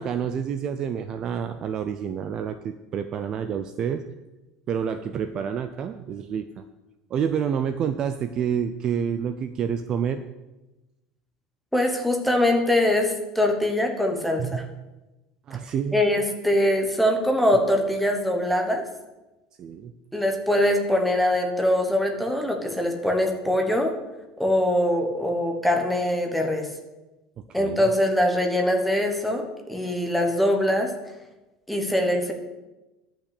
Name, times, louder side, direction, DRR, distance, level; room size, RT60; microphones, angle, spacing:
voice 1, 0.0-4.0 4.7-6.6 7.1-10.2 14.4-14.7 15.5-16.0 19.6-19.9 27.4-27.9, right 7 dB, 30° right, 9 dB, 0.4 m, -28 dB
voice 2, 11.7-14.6 15.9-18.8 20.1-23.9 24.4-26.7 27.5-30.9 31.7-32.3, left 1 dB, ahead, 3 dB, 1.2 m, -23 dB
11.5 x 5.9 x 8.3 m, 1.1 s
cardioid pair, 175°, 2 cm